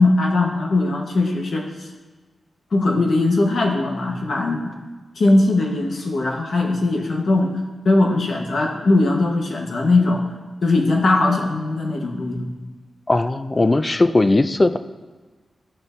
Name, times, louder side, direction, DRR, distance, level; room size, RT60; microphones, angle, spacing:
voice 1, 0.0-1.7 2.7-4.7 5.2-7.5 7.8-10.3 10.6-12.5, left 2 dB, 65° left, 1 dB, 1.2 m, -19 dB
voice 2, 13.1-14.8, left 2 dB, 25° left, 11 dB, 0.3 m, -18 dB
13.0 x 5.5 x 2.7 m, 1.3 s
wide cardioid pair, 100°, 0 cm